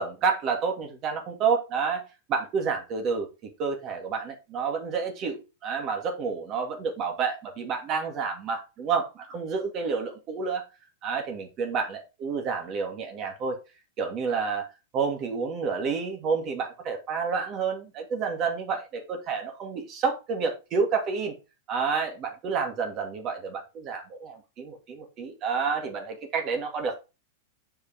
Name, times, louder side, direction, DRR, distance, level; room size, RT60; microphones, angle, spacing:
voice 1, 0.0-2.0 2.3-3.3 3.6-10.6 11.0-13.6 14.0-14.7 14.9-21.3 21.7-26.9, right 5 dB, 40° right, 4 dB, 2.0 m, -29 dB
6.5 x 5.3 x 3.4 m, 0.28 s
hypercardioid pair, 110°, 0 cm